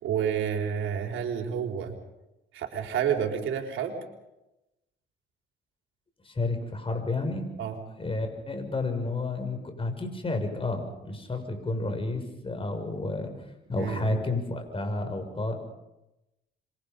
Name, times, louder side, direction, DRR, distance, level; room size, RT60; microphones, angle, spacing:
voice 1, 0.0-1.9 2.5-3.9 7.6-7.8 13.8-14.2, right 8 dB, 80° right, 3 dB, 4.3 m, -29 dB
voice 2, 6.2-7.5 8.0-13.3 13.7-15.6, left 2 dB, 25° left, 6 dB, 6.3 m, -31 dB
27.5 x 24.0 x 5.4 m, 0.94 s
cardioid pair, 90°, 20 cm